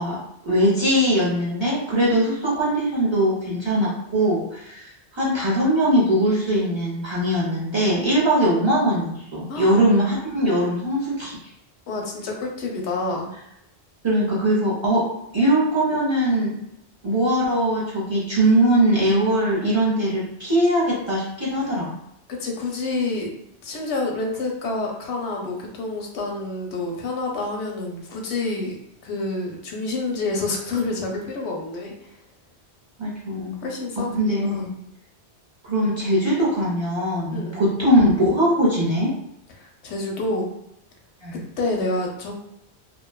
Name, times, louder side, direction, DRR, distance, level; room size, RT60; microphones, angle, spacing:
voice 1, 0.0-4.9 5.1-11.3 14.0-16.6 17.0-21.9 33.0-33.6 34.1-34.8 35.6-39.2 41.2-41.4, right 1 dB, 30° right, -7 dB, 0.6 m, -21 dB
voice 2, 9.5-9.8 11.9-13.3 22.3-23.3 23.6-28.8 29.0-31.9 33.4-34.1 34.4-34.7 37.3-37.6 39.6-40.5 41.6-42.3, left 2 dB, 85° left, 0 dB, 0.9 m, -28 dB
2.5 x 2.2 x 2.2 m, 0.78 s
omnidirectional pair, 1.1 m